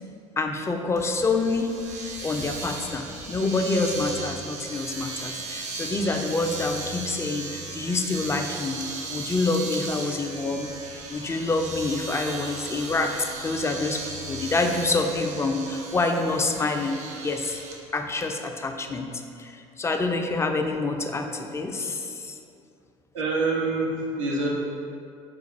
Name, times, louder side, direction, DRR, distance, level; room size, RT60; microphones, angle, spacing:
voice 1, 0.4-1.7 2.2-8.8 9.1-10.7 11.1-17.0 17.2-17.6 17.9-19.1 19.4-22.4, left 3 dB, 15° left, 4 dB, 0.4 m, -27 dB
Domestic sounds home sounds, 1.0-17.8, right 3 dB, 45° right, 0.6 m, -36 dB
voice 2, 12.6-12.9 23.1-24.5, right 3 dB, 85° right, -4 dB, 0.6 m, -27 dB
4.1 x 2.3 x 4.1 m, 2.5 s
hypercardioid pair, 60°, 16 cm